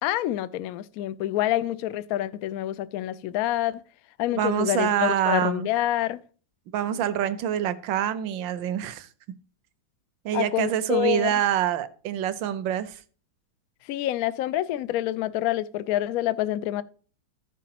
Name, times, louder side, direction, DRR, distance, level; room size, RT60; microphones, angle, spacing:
voice 1, 0.0-3.8 4.2-6.2 10.3-11.3 13.9-16.8, left 14 dB, 80° left, 0.8 m, -27 dB
voice 2, 4.3-5.7 6.7-9.1 10.2-13.0, right 10 dB, 75° right, 1.4 m, -26 dB
15.0 x 6.1 x 2.9 m
omnidirectional pair, 2.1 m